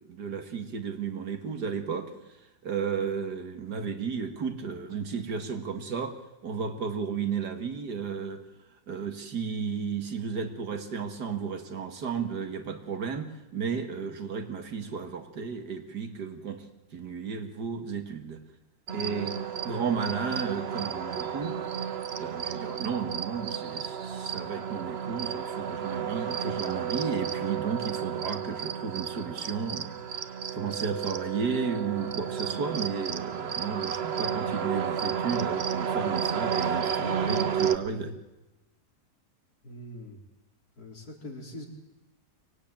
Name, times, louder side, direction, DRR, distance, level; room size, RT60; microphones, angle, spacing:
voice 1, 0.0-2.1 2.6-8.4 8.9-13.3 13.5-16.7 16.9-18.4 18.9-19.4 19.6-21.6 22.2-38.1, right 6 dB, 70° right, 7 dB, 2.3 m, -33 dB
sound 1, 18.9-37.8, right 7 dB, 45° right, 1.0 m, -32 dB
voice 2, 39.6-40.2 40.8-41.7, left 1 dB, 60° left, 1 dB, 4.6 m, -42 dB
24.0 x 18.5 x 9.0 m, 1.1 s
omnidirectional pair, 1.8 m